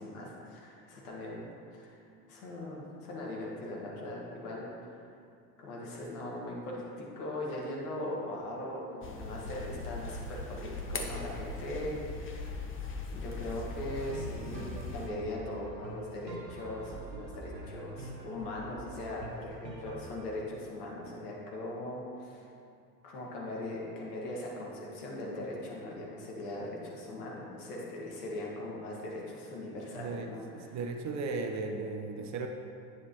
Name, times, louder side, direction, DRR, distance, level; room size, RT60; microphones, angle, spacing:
voice 1, 0.0-5.0 5.6-12.6 13.1-22.5 23.0-30.7, left 1 dB, 65° left, -3 dB, 1.9 m, -40 dB
sound 1, 9.0-15.1, left 3 dB, 25° left, 0.9 m, -40 dB
sound 2, 13.5-20.3, right 2 dB, 85° right, 1.0 m, -45 dB
voice 2, 30.0-32.5, right 3 dB, 35° right, 4 dB, 0.6 m, -36 dB
9.0 x 6.6 x 3.1 m, 2.5 s
figure-of-eight pair, 70°, 50 cm